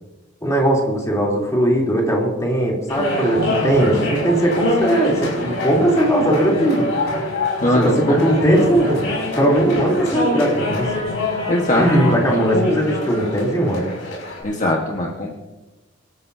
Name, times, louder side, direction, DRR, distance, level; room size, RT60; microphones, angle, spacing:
voice 1, 0.4-6.9 7.7-9.1 9.4-10.9 11.8-13.9, right 1 dB, 15° left, -2 dB, 3.3 m, -18 dB
sound 1, 2.9-14.4, left 1 dB, 75° left, 5.8 m, -25 dB
voice 2, 7.6-8.2 11.5-12.2 12.5-12.8 14.4-15.3, left 1 dB, 40° left, -1 dB, 1.4 m, -20 dB
24.0 x 13.5 x 2.8 m, 1.1 s
head